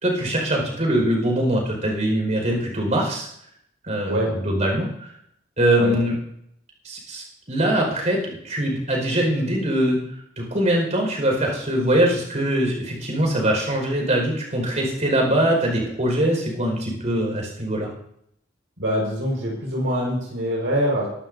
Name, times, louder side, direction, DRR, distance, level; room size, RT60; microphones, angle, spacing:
voice 1, 0.0-3.3 3.8-5.1 5.6-6.1 6.8-10.0 10.4-17.9, right 1 dB, 40° right, 0 dB, 5.1 m, -22 dB
voice 2, 18.8-21.1, equal, 80° right, -1 dB, 5.1 m, -24 dB
22.0 x 12.0 x 2.7 m, 0.72 s
head